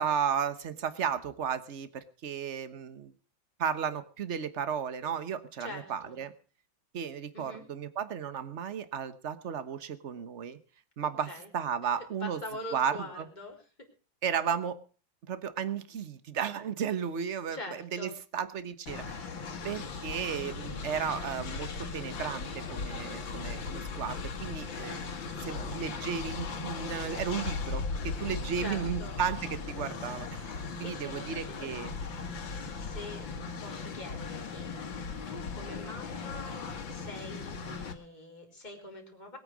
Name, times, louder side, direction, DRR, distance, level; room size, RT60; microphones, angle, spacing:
voice 1, 0.0-3.1 3.6-6.3 6.9-10.6 11.0-12.4 12.7-13.3 14.2-14.8 15.3-19.3 19.6-25.0 25.4-31.9, right 7 dB, 40° right, 13 dB, 1.3 m, -34 dB
voice 2, 5.6-6.2 7.3-7.7 11.3-11.5 12.2-13.9 17.5-18.1 20.7-21.0 28.6-29.1 30.6-31.7 32.5-33.3 33.6-35.0 35.3-39.4, left 1 dB, 20° left, 1 dB, 3.9 m, -44 dB
Train, 18.9-37.9, left 4 dB, 80° left, 2.5 m, -38 dB
20.0 x 8.9 x 6.2 m, 0.40 s
omnidirectional pair, 2.1 m